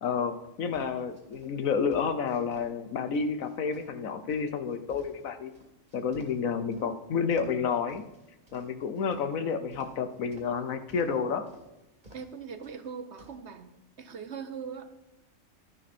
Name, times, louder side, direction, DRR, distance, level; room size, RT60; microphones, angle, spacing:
voice 1, 0.0-5.5 5.9-8.0 8.5-11.5, left 6 dB, 80° left, 10 dB, 1.4 m, -30 dB
sound 1, 0.7-2.7 3.1-6.9 7.3-9.3 9.7-10.6 10.9-11.2 11.5-11.6 12.0-12.4 12.6-13.4, right 1 dB, 35° right, 2.5 m, -53 dB
voice 2, 12.1-13.7 14.0-14.9, right 6 dB, 55° right, 9 dB, 1.2 m, -40 dB
12.5 x 11.0 x 4.3 m, 0.95 s
omnidirectional pair, 1.4 m